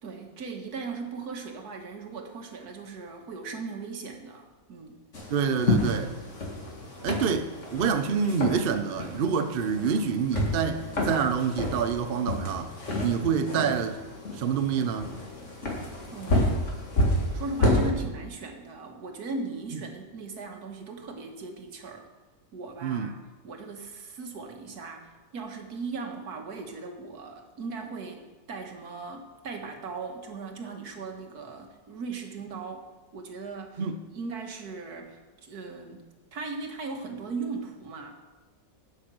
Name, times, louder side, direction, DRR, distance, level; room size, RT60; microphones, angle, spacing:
voice 1, 0.0-5.0 16.1-16.8 17.3-22.1 22.5-23.1 23.4-32.9 33.1-33.8 34.1-36.1 36.3-38.2, right 4 dB, 60° right, 1.8 m, -38 dB
sound 1, 5.1-17.9, left 1 dB, 40° left, 2.2 m, -30 dB
voice 2, 5.3-6.1 7.0-12.7 13.0-14.0 14.3-15.1 19.7-19.8 22.8-23.1 33.8-34.0, right 6 dB, 75° right, 0.5 m, -27 dB
8.7 x 8.2 x 6.2 m
omnidirectional pair, 1.9 m